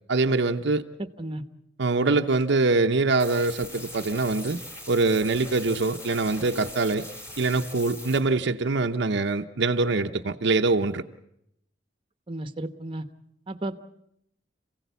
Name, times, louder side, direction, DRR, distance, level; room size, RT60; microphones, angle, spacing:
voice 1, 0.1-0.8 1.8-4.6 4.9-7.0 7.4-11.0, right 3 dB, 65° right, 6 dB, 0.8 m, -24 dB
voice 2, 1.0-1.4 12.3-13.0 13.5-13.9, right 1 dB, 30° right, 9 dB, 1.1 m, -33 dB
sound 1, 3.2-8.2, left 1 dB, 15° left, 3.8 m, -41 dB
27.5 x 16.5 x 8.2 m, 0.79 s
head